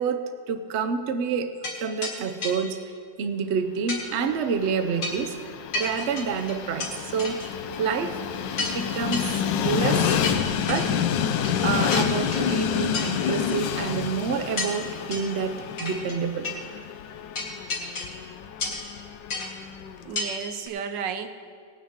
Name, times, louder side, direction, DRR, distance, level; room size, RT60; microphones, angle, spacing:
voice 1, 0.0-2.8 3.2-7.4 7.8-8.3 8.7-10.2 10.5-11.0 11.6-16.5, right 6 dB, 65° right, 9 dB, 0.7 m, -28 dB
sound 1, 1.6-1.8 2.0-2.2 2.4-2.6 3.9-4.0 5.0-5.3 5.7-6.9 7.2-7.8 8.1-8.2 8.6-8.8 9.1-9.3 10.2-10.9 11.4-11.6 11.9-12.6 12.9-13.1 13.5-13.6 14.6-14.8 15.1-15.4 15.8-16.2 16.4-16.6 17.4-18.2 18.6-18.9 19.3-19.5 20.2-20.3 20.7-20.8, left 3 dB, 65° left, 2.3 m, -31 dB
Train, 4.1-20.2, left 8 dB, 85° left, 1.3 m, -29 dB
voice 2, 20.0-21.3, right 7 dB, 80° right, 8 dB, 1.4 m, -33 dB
18.5 x 9.4 x 3.6 m, 2.1 s
omnidirectional pair, 1.9 m